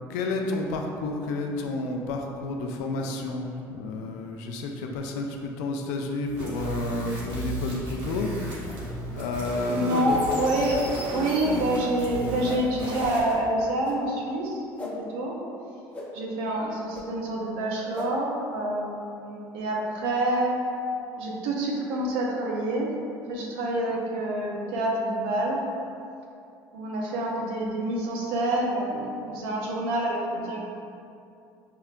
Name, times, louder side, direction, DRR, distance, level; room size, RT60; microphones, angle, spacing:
voice 1, 0.1-8.4 9.1-10.2, left 2 dB, 90° left, 2 dB, 0.4 m, -30 dB
sound 1, 6.3-13.3, right 1 dB, 60° right, 1.2 m, -34 dB
sound 2, 8.0-8.2 9.2-9.3 10.3-10.4 11.3-11.4 12.4-12.6 13.8-14.0 14.8-14.9 15.9-16.1 16.9-17.0 17.9-18.1, left 3 dB, 20° left, 0.7 m, -39 dB
voice 2, 9.7-15.3 16.1-20.5 21.2-22.9 23.3-25.6 26.7-30.6, right 1 dB, 85° right, -2 dB, 0.6 m, -27 dB
5.6 x 2.1 x 2.4 m, 2.6 s
supercardioid pair, 85°, 9 cm